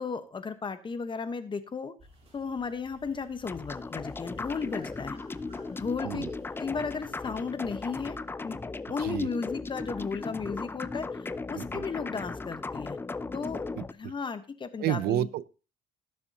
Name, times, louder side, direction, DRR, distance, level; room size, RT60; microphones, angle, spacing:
voice 1, 0.0-1.9 2.3-5.2 5.7-6.3 6.6-8.2 8.4-8.6 8.9-13.0 13.3-13.6 13.9-15.3, left 5 dB, 30° left, 10 dB, 1.1 m, -34 dB
sound 1, 2.0-7.8, right 1 dB, 35° right, 3.8 m, -58 dB
sound 2, 3.4-13.9, left 3 dB, 15° left, 0.4 m, -37 dB
voice 2, 14.8-15.4, right 13 dB, 70° right, 18 dB, 0.6 m, -30 dB
17.5 x 7.0 x 2.8 m, 0.33 s
cardioid pair, 110°, 17 cm